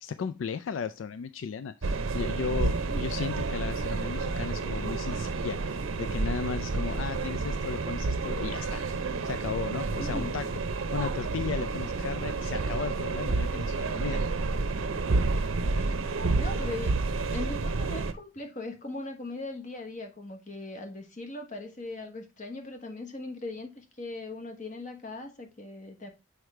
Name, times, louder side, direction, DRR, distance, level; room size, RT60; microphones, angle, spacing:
voice 1, 0.0-10.4 10.9-14.2, left 6 dB, 75° left, 0.3 m, -35 dB
sound 1, 1.8-18.1, right 3 dB, 90° right, 0.6 m, -30 dB
voice 2, 10.0-10.4 15.7-15.9 16.3-17.0 17.3-26.1, left 2 dB, 40° left, 1.2 m, -39 dB
6.3 x 4.8 x 3.2 m
head